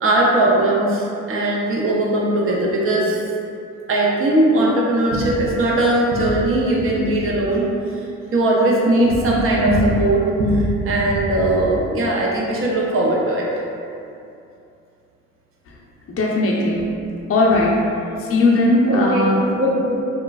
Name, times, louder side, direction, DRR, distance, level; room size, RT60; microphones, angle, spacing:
voice 1, 0.0-3.2 3.9-7.7 8.3-13.5 18.9-20.0, right 1 dB, 45° right, -3 dB, 0.5 m, -19 dB
voice 2, 16.1-16.9 17.3-17.8 18.1-19.4 19.8-19.9, left 2 dB, 50° left, -3 dB, 0.5 m, -18 dB
2.9 x 2.4 x 2.3 m, 2.6 s
cardioid pair, 90°, 30 cm